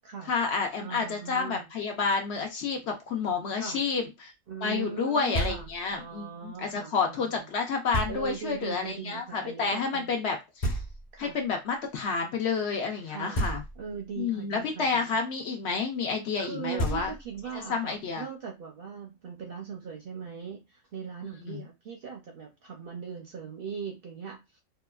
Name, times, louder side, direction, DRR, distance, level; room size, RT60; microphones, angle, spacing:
voice 1, 0.3-4.3 4.6-10.8 11.2-13.6 14.2-17.1 17.5-18.2 21.4-21.6, left 5 dB, 65° left, 3 dB, 0.8 m, -30 dB
voice 2, 0.8-1.7 3.5-3.8 4.5-5.7 5.9-7.4 8.1-10.2 11.1-11.4 13.0-13.4 13.8-15.2 16.4-24.6, right 6 dB, 60° right, 1 dB, 0.6 m, -40 dB
Knock, 5.3-6.0 7.9-8.6 10.6-11.4 13.3-14.1 16.4-16.5 16.8-17.6, equal, 35° left, 1.0 m, -32 dB
2.8 x 2.3 x 2.3 m, 0.22 s
omnidirectional pair, 1.4 m